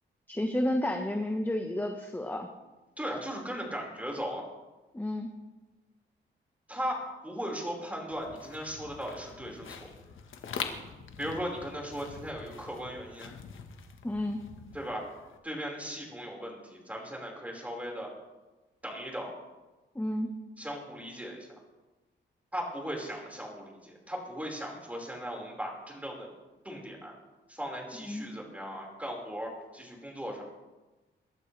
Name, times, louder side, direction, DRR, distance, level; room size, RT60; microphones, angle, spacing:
voice 1, 0.3-2.5 4.9-5.3 14.0-14.4 19.9-20.3 28.1-28.3, left 1 dB, 10° left, 4 dB, 1.3 m, -31 dB
voice 2, 3.0-4.4 6.7-9.8 11.2-13.3 14.7-15.0 15.4-18.1 18.8-19.3 20.6-21.5 22.5-26.3 26.6-27.2 27.5-30.4, equal, 5° right, -1 dB, 5.1 m, -37 dB
sound 1, 8.1-15.4, left 6 dB, 80° left, 1.5 m, -44 dB
22.5 x 12.5 x 3.4 m, 1.1 s
cardioid pair, 85°, 20 cm